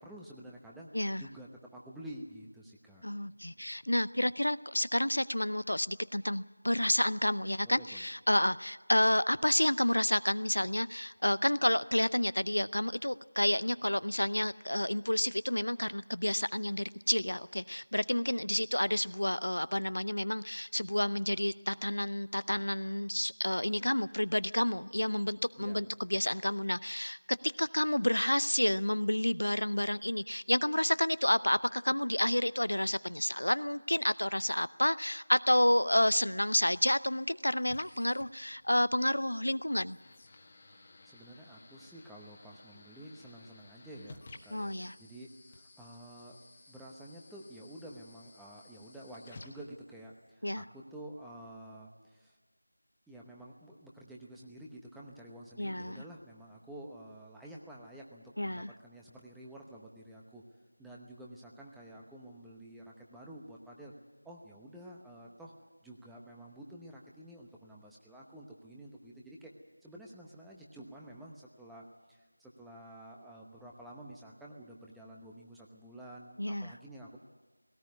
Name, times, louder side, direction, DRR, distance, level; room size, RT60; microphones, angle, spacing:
voice 1, 0.0-3.0 7.6-8.0 25.6-25.8 40.7-46.4 46.7-52.4 53.1-60.4 60.8-63.9 64.2-65.5 65.8-69.5 69.8-77.2, right 1 dB, ahead, -3 dB, 1.0 m, -50 dB
voice 2, 3.0-40.0 44.5-44.9 50.4-50.6 55.6-56.0 58.4-58.7 76.4-76.7, left 1 dB, 85° left, 16 dB, 0.6 m, -30 dB
sound 1, 36.3-50.3, left 2 dB, 25° left, 1.5 m, -56 dB
18.0 x 17.5 x 9.5 m, 1.3 s
figure-of-eight pair, 170°, 0 cm